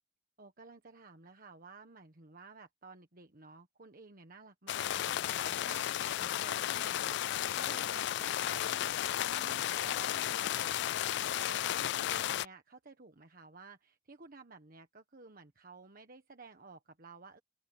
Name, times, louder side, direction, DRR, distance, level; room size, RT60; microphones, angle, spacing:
voice 1, 0.4-9.0 9.3-10.7 11.3-17.4, right 4 dB, 50° right, 1.4 m, -53 dB
sound 1, 4.7-12.5, left 11 dB, 65° left, 0.3 m, -33 dB
open air
head